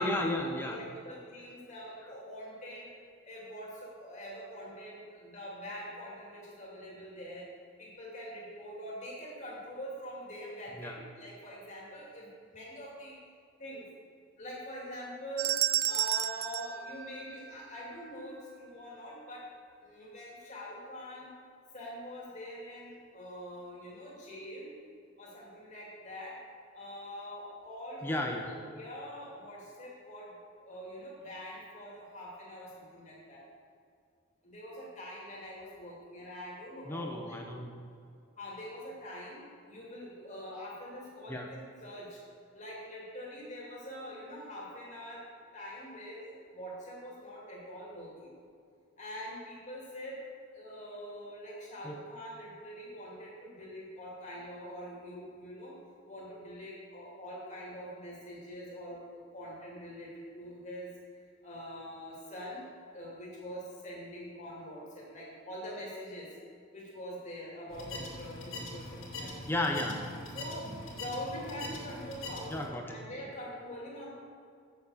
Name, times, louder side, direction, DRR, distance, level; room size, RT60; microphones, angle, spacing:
voice 1, 0.0-0.8 10.8-10.9 28.0-28.5 36.9-37.7 41.3-41.5 51.8-52.0 69.5-69.9 72.5-73.0, left 1 dB, 10° left, 1 dB, 0.7 m, -33 dB
voice 2, 0.6-2.9 3.2-7.5 7.8-13.1 13.6-13.9 14.4-15.6 15.9-19.5 19.8-21.3 21.7-24.7 25.2-26.4 26.7-30.3 30.6-33.4 34.4-37.4 38.4-39.4 39.7-42.2 42.5-45.3 45.5-48.4 49.0-50.2 50.5-55.8 56.1-60.9 61.4-66.3 66.7-69.5 70.3-72.6 72.9-74.1, equal, 35° left, -5 dB, 2.5 m, -44 dB
sound 1, 15.4-17.8, right 12 dB, 50° right, 0.3 m, -32 dB
sound 2, 67.7-72.7, left 2 dB, 90° left, 2.3 m, -42 dB
8.1 x 7.2 x 6.4 m, 2.3 s
head